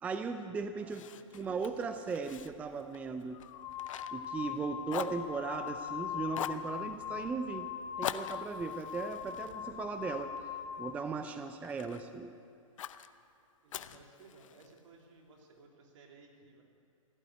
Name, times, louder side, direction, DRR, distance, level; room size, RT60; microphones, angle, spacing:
voice 1, 0.0-1.1 1.3-3.4 4.1-7.7 8.0-10.5 10.8-12.3, right 4 dB, 10° right, 8 dB, 0.4 m, -37 dB
voice 2, 0.8-1.6 13.6-16.6, right 3 dB, 60° right, 1 dB, 2.9 m, -59 dB
Fire, 0.9-4.6 4.9-5.9 6.3-6.7 8.0-10.4 10.9-12.1 12.8-13.1 13.7-14.8, left 10 dB, 65° left, 0.7 m, -43 dB
sound 1, 2.4-2.5 3.3-11.0, left 9 dB, 35° left, 0.9 m, -41 dB
15.5 x 8.7 x 9.3 m, 2.6 s
hypercardioid pair, 140°, 18 cm